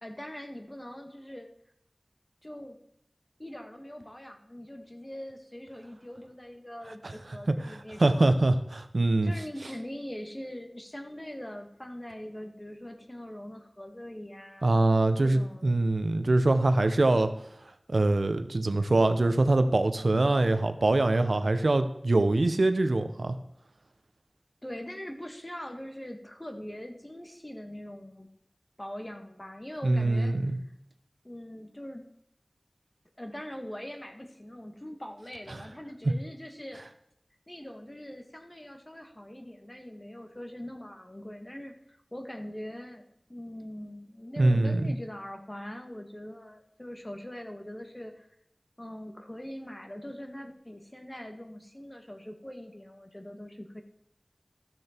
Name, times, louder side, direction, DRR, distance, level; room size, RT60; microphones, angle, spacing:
voice 1, 0.0-1.5 2.4-2.8 3.4-8.4 9.2-14.7 15.2-15.8 24.6-28.3 28.8-30.6 31.2-32.0 33.2-36.8 37.5-43.0 43.3-48.3 48.8-53.8, left 1 dB, 30° left, 4 dB, 1.8 m, -42 dB
voice 2, 7.6-9.3 14.6-17.3 17.9-23.4 29.8-30.6 44.4-44.8, right 2 dB, 90° right, 9 dB, 0.8 m, -24 dB
13.5 x 6.7 x 4.5 m, 0.78 s
wide cardioid pair, 40°, 0 cm